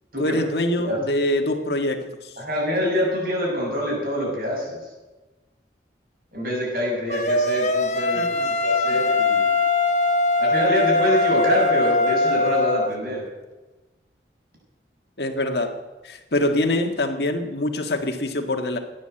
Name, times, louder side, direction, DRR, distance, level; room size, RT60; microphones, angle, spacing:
voice 1, 0.2-2.3 8.1-8.6 8.9-9.0 15.2-15.8 16.0-18.8, left 1 dB, 65° left, 5 dB, 1.8 m, -24 dB
voice 2, 2.4-4.8 6.3-9.5 10.4-13.2, left 1 dB, 50° right, -2 dB, 7.2 m, -25 dB
sound 1, 7.1-12.9, left 3 dB, 40° left, 1.0 m, -21 dB
17.5 x 9.6 x 7.9 m, 1.1 s
head